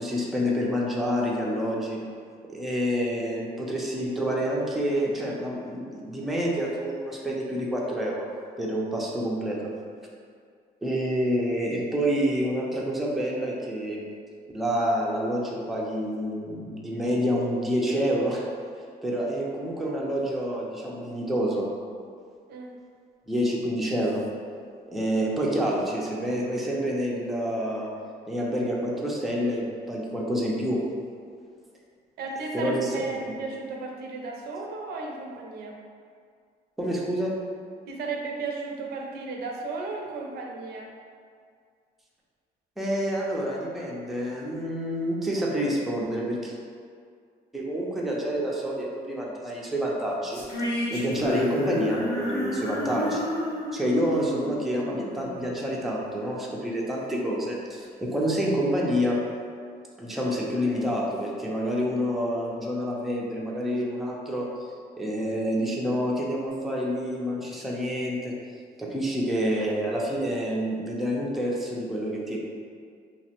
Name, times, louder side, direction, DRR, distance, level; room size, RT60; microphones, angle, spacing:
voice 1, 0.0-2.0 2.4-8.3 8.6-9.7 10.8-14.0 14.5-18.5 19.0-21.7 23.3-24.3 24.9-27.9 28.3-30.8 32.5-33.2 36.8-37.4 42.8-46.5 47.5-50.5 50.9-53.3 53.7-59.2 60.0-64.5 65.0-68.3 68.8-72.4, equal, ahead, -3 dB, 0.4 m, -28 dB
voice 2, 32.2-35.7 37.9-40.9, right 3 dB, 70° right, 0 dB, 0.5 m, -34 dB
sound 1, 50.3-55.7, left 1 dB, 85° left, 0.8 m, -31 dB
3.0 x 2.0 x 2.8 m, 2.1 s
cardioid pair, 110°, 17 cm